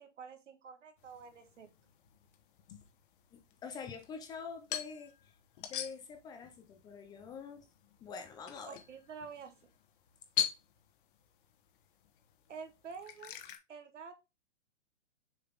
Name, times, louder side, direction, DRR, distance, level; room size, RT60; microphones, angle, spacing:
voice 1, 0.0-1.7 8.7-9.5 12.5-13.4 13.7-14.2, right 6 dB, 75° right, 1.7 m, -48 dB
sound 1, 1.0-13.6, left 10 dB, 45° left, 1.3 m, -44 dB
voice 2, 3.3-5.2 5.6-7.7 8.0-8.8, left 5 dB, 10° left, 0.5 m, -46 dB
6.9 x 3.9 x 3.6 m
hypercardioid pair, 140°, 36 cm